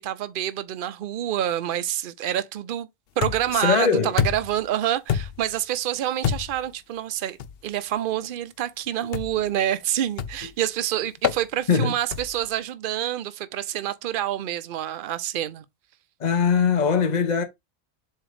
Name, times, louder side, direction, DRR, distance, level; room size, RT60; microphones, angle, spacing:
voice 1, 0.0-2.9 3.2-7.4 7.6-15.6, right 11 dB, 60° right, 0.7 m, -27 dB
sound 1, 3.2-3.6 4.2-4.6 5.1-5.5 6.2-6.7 7.4-7.6 9.1-9.5 10.2-10.5 11.2-11.4 12.1-12.5, left 8 dB, 65° left, 0.8 m, -27 dB
voice 2, 3.5-4.1 11.7-11.9 16.2-17.4, left 6 dB, 45° left, 1.0 m, -21 dB
7.4 x 2.8 x 5.0 m
omnidirectional pair, 1.1 m